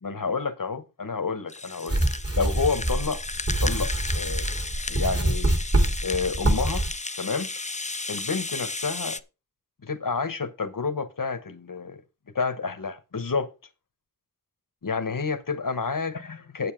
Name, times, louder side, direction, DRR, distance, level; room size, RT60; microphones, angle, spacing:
voice 1, 0.0-3.2 3.6-4.5 4.9-5.5 6.0-6.8 7.2-7.5 8.1-9.2 9.8-12.0 12.3-13.5 14.8-16.7, left 4 dB, 70° left, 1.1 m, -29 dB
Rattle (instrument), 1.5-9.2, left 3 dB, 20° left, 0.6 m, -34 dB
sound 1, 1.9-6.9, right 1 dB, 45° right, 3.1 m, -25 dB
8.5 x 7.9 x 5.0 m
wide cardioid pair, 55°, 34 cm